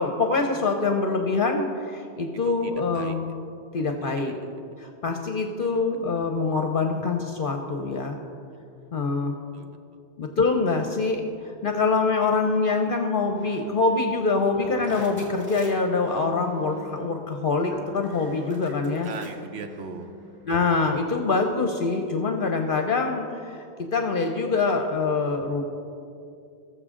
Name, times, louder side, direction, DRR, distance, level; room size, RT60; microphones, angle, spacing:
voice 1, 0.0-3.2 3.7-4.3 4.8-8.2 8.9-9.4 10.2-19.1 20.5-25.6, left 3 dB, 55° left, 4 dB, 0.9 m, -25 dB
voice 2, 2.4-3.2 4.0-4.1 9.5-9.8 19.0-20.1, right 5 dB, 75° right, 7 dB, 1.0 m, -39 dB
sound 1, 13.2-20.5, left 1 dB, 10° right, 2.3 m, -44 dB
20.0 x 6.9 x 3.7 m, 2.6 s
omnidirectional pair, 1.1 m